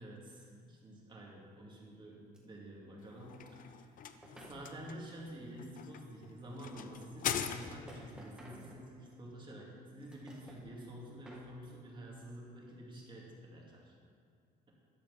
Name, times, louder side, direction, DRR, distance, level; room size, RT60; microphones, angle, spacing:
voice 1, 0.0-3.8 4.5-13.9, right 1 dB, 30° right, -3 dB, 2.5 m, -49 dB
sound 1, 2.3-2.4 4.1-4.6 6.3-6.4 7.3-9.3 9.8-10.7 11.1-11.5, right 1 dB, 5° right, 1.7 m, -55 dB
sound 2, 3.0-8.1, left 8 dB, 55° left, 0.6 m, -42 dB
12.0 x 5.1 x 7.1 m, 2.2 s
cardioid pair, 110°, 17 cm